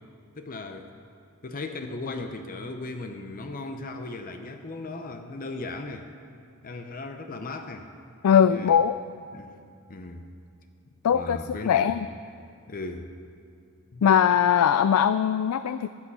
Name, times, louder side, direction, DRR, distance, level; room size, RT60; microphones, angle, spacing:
voice 1, 0.4-0.9 1.4-6.1 6.6-7.9 8.5-8.8 9.3-9.6 9.9-10.3 11.1-12.0 12.7-13.1 13.9-14.1, left 2 dB, 40° left, 6 dB, 0.7 m, -37 dB
voice 2, 8.2-8.9 11.0-12.1 14.0-15.9, left 8 dB, 75° left, 13 dB, 0.3 m, -21 dB
13.5 x 8.7 x 8.0 m, 2.4 s
head